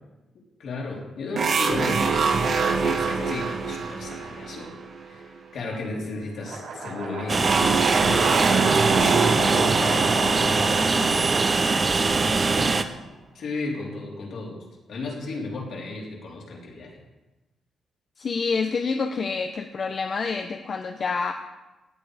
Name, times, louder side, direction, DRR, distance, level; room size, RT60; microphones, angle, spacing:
voice 1, 0.6-2.2 2.8-4.7 5.1-11.6 12.2-13.0 13.3-17.0, left 3 dB, 65° left, -2 dB, 4.1 m, -35 dB
sound 1, 1.4-5.2 7.4-11.8, right 5 dB, 55° right, 2.0 m, -25 dB
sound 2, 6.4-12.5, right 3 dB, 80° right, 6.1 m, -33 dB
Train, 7.3-12.8, right 4 dB, 30° right, 0.8 m, -22 dB
voice 2, 18.2-21.3, left 4 dB, 45° left, 5 dB, 0.9 m, -27 dB
17.0 x 10.5 x 5.1 m, 1.1 s
cardioid pair, 135°, 0 cm